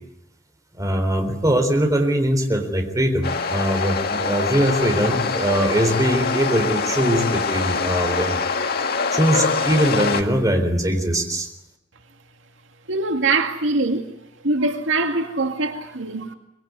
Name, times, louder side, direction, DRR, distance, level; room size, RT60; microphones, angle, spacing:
voice 1, 0.8-8.4 9.1-11.5, right 1 dB, 20° right, 3.9 m, -21 dB
sound 1, 3.2-10.2, left 5 dB, 55° left, 1.9 m, -24 dB
voice 2, 12.9-14.1 14.4-16.3, right 3 dB, 75° right, 2.2 m, -23 dB
24.0 x 22.0 x 9.6 m
head